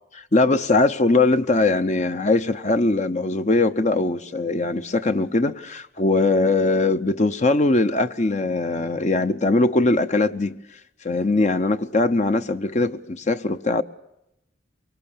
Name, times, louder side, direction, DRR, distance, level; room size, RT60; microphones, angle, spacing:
voice 1, 0.3-10.6 11.0-13.8, left 2 dB, 40° left, 0.8 m, -21 dB
24.0 x 23.5 x 6.9 m
head